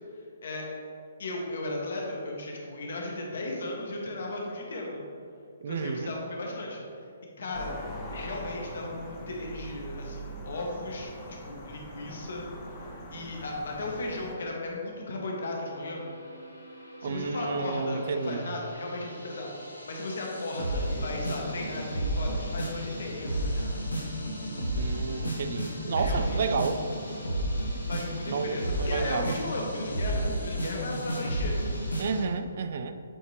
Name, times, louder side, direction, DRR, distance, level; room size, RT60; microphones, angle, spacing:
voice 1, 1.2-5.0 5.7-6.8 7.4-7.7 8.1-12.5 13.1-16.0 17.0-23.7 26.0-26.8 27.9-31.5, left 2 dB, 55° left, -1 dB, 1.1 m, -36 dB
voice 2, 5.6-6.1 17.0-18.6 24.8-26.8 28.3-29.4 32.0-33.0, right 5 dB, 45° right, 9 dB, 0.3 m, -31 dB
sound 1, 7.5-14.3, equal, 25° left, 0.8 m, -42 dB
sound 2, 15.6-32.2, right 1 dB, 75° left, 1.0 m, -33 dB
7.8 x 3.9 x 3.2 m, 2.4 s
figure-of-eight pair, 130°, 0 cm